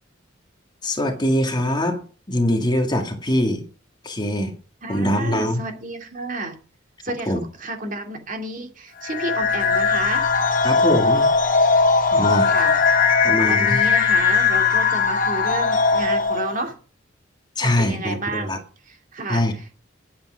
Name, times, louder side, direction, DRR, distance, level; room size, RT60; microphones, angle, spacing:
voice 1, 0.8-2.0 2.3-3.6 4.0-4.5 4.9-5.6 7.3-7.4 10.6-11.3 12.1-12.5 13.2-13.8 17.6-18.6 19.3-19.5, left 1 dB, 25° left, 1.9 m, -22 dB
voice 2, 4.8-6.6 7.0-10.3 12.5-13.0 13.5-16.7 17.6-18.6 18.9-19.6, right 2 dB, 45° right, 2.4 m, -31 dB
sound 1, 9.0-16.6, left 5 dB, 45° left, 2.1 m, -19 dB
10.5 x 8.6 x 6.2 m
head